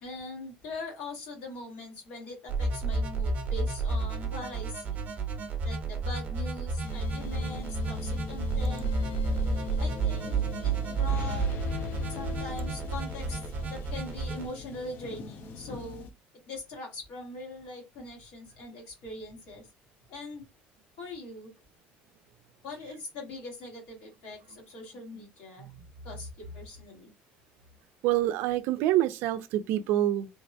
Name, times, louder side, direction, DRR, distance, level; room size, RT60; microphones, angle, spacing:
voice 1, 0.0-5.0 5.6-8.9 9.8-11.5 12.1-13.4 13.7-16.1 16.5-19.7 20.1-20.4 21.0-21.5 22.6-25.7 26.0-27.1, left 2 dB, 85° left, 1.5 m, -42 dB
sound 1, 2.5-14.5, right 3 dB, 40° right, 0.7 m, -31 dB
sound 2, 6.8-16.1, left 5 dB, 50° left, 0.4 m, -39 dB
voice 2, 28.0-30.3, right 13 dB, 70° right, 0.3 m, -26 dB
3.3 x 2.1 x 2.6 m
cardioid pair, 130°, 4 cm